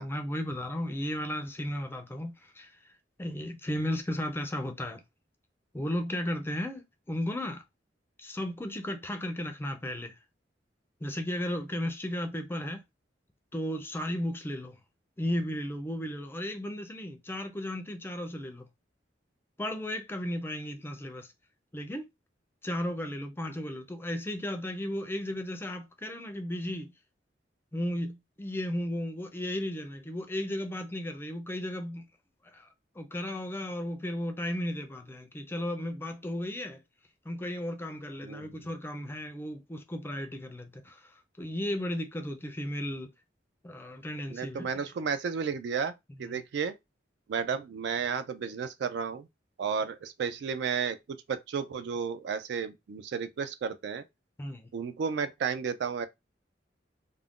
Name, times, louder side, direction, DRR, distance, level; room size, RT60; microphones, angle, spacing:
voice 1, 0.0-2.7 3.2-5.0 5.7-7.6 8.2-10.1 11.0-12.8 13.5-14.8 15.2-18.7 19.6-21.3 21.7-22.1 22.6-26.9 27.7-32.1 32.5-32.7 33.0-36.8 37.2-41.1 41.4-43.1 43.6-44.7 54.4-54.7, left 1 dB, 15° left, 0.4 m, -34 dB
voice 2, 38.2-38.6 44.3-45.9 46.2-46.7 47.3-49.3 49.6-54.0 54.7-56.1, right 6 dB, 65° right, 0.3 m, -32 dB
2.4 x 2.1 x 3.5 m
head